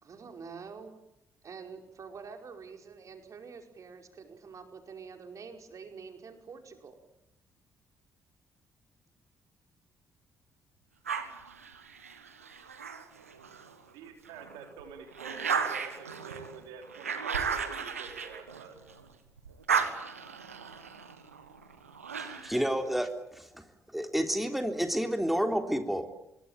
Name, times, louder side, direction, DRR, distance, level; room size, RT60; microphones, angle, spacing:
voice 1, 0.0-1.0 1.4-7.0, right 5 dB, 45° right, 4 dB, 5.1 m, -46 dB
sound 1, 11.0-13.7 14.2-19.1 19.4-22.7, right 6 dB, 85° right, 1.6 m, -35 dB
voice 2, 13.9-18.7, right 6 dB, 70° right, 3 dB, 4.0 m, -47 dB
voice 3, 22.2-23.6 23.9-26.1, equal, ahead, 5 dB, 3.6 m, -30 dB
27.0 x 23.0 x 9.0 m, 0.84 s
figure-of-eight pair, 40°, 7 cm